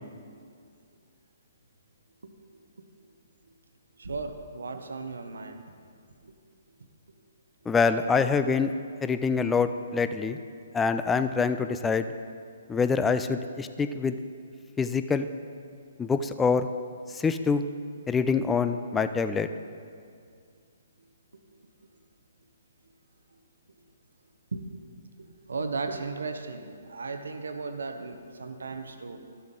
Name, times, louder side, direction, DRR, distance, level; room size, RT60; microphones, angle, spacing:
voice 1, 2.2-2.9 4.0-5.6 6.2-6.3 24.5-24.6 25.2-29.2, right 4 dB, 75° right, 7 dB, 0.8 m, -36 dB
voice 2, 7.7-8.7 9.0-10.4 10.7-12.1 12.7-14.1 14.8-15.3 16.0-16.7 17.1-17.6 18.1-19.5, left 5 dB, 10° left, 10 dB, 0.4 m, -25 dB
13.0 x 6.9 x 3.8 m, 2.2 s
figure-of-eight pair, 135°, 0 cm